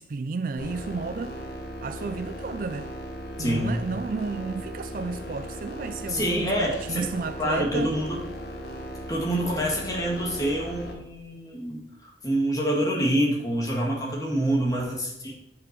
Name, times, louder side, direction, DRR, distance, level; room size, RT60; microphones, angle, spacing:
voice 1, 0.0-1.4 1.8-2.9 3.4-7.9 14.4-14.9, right 4 dB, 45° right, 0.4 m, -33 dB
sound 1, 0.6-10.9, equal, 55° left, 1.5 m, -37 dB
voice 2, 3.4-3.8 6.1-7.1 7.4-8.2 9.1-15.3, equal, 20° left, 2.1 m, -26 dB
8.4 x 5.7 x 6.0 m
head